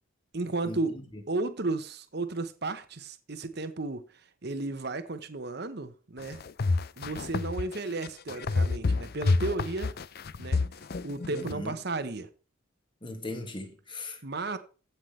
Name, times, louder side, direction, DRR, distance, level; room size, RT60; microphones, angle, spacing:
voice 1, 0.3-1.0 1.3-6.4 7.0-9.9 10.4-10.6 11.0-12.3 14.2-14.6, right 3 dB, 50° right, 1.0 m, -34 dB
sound 1, 6.2-11.5, left 3 dB, 45° left, 0.5 m, -28 dB
voice 2, 11.3-11.7 13.0-14.2, left 2 dB, 25° left, 1.9 m, -38 dB
15.5 x 5.8 x 3.3 m
head